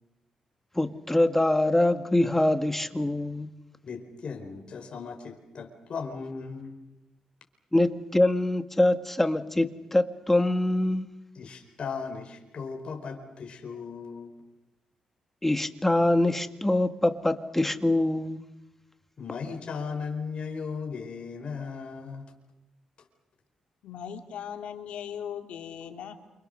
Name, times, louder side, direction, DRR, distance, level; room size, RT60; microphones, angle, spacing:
voice 1, 0.8-3.5 7.7-11.1 15.4-18.4, left 1 dB, 10° left, 9 dB, 1.9 m, -24 dB
voice 2, 3.8-6.8 11.3-14.3 19.2-22.3, left 5 dB, 60° left, 3 dB, 4.7 m, -37 dB
voice 3, 23.8-26.1, left 8 dB, 85° left, 5 dB, 2.9 m, -38 dB
29.0 x 27.0 x 6.7 m, 0.95 s
cardioid pair, 70°, 2 cm